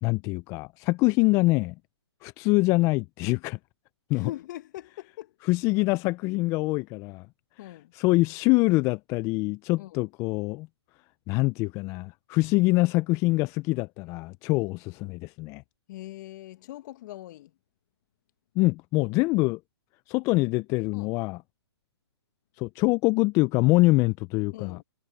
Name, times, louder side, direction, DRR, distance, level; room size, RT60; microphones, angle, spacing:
voice 1, 0.0-1.7 2.2-3.6 4.1-4.3 5.5-7.3 7.9-10.7 11.3-15.6 18.6-19.6 20.1-21.4 22.6-24.8, left 23 dB, 20° left, 0.4 m, -24 dB
voice 2, 4.1-5.4 7.6-7.9 9.8-10.0 15.9-17.5 20.9-21.2 24.5-24.8, left 14 dB, 40° left, 1.7 m, -41 dB
hypercardioid pair, 135°, 15 cm